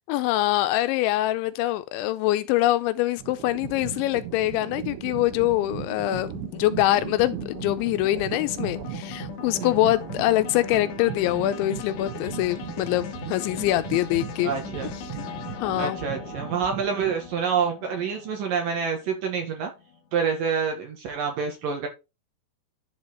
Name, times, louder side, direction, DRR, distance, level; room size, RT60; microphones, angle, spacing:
voice 1, 0.1-14.5 15.2-15.3 15.6-16.0, left 15 dB, 85° left, 2.9 m, -24 dB
sound 1, 3.2-17.4, right 13 dB, 85° right, 3.5 m, -38 dB
sound 2, 3.8-20.2, left 7 dB, 65° left, 2.3 m, -40 dB
voice 2, 14.4-14.9 15.8-19.7 20.1-21.9, right 6 dB, 60° right, 2.7 m, -27 dB
11.0 x 4.4 x 4.4 m
omnidirectional pair, 5.4 m